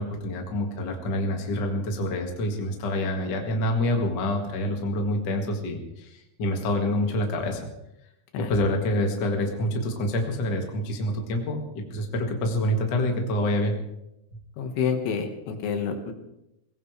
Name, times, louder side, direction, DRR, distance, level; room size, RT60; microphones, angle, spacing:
voice 1, 0.0-7.7 8.3-13.8, left 1 dB, 45° left, 2 dB, 1.3 m, -27 dB
voice 2, 14.6-16.1, left 6 dB, 80° left, 5 dB, 3.9 m, -28 dB
21.5 x 17.5 x 3.4 m, 0.87 s
omnidirectional pair, 5.3 m